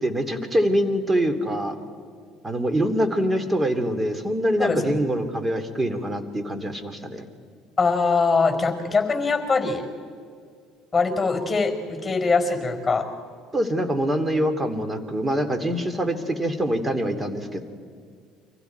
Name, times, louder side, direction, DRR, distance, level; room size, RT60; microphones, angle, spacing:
voice 1, 0.0-1.8 2.4-7.3 13.5-17.6, equal, 20° right, 9 dB, 2.7 m, -24 dB
voice 2, 4.6-4.9 7.8-9.8 10.9-13.0, left 4 dB, 20° left, 5 dB, 4.6 m, -22 dB
30.0 x 24.0 x 4.6 m, 2.1 s
hypercardioid pair, 65°, 0 cm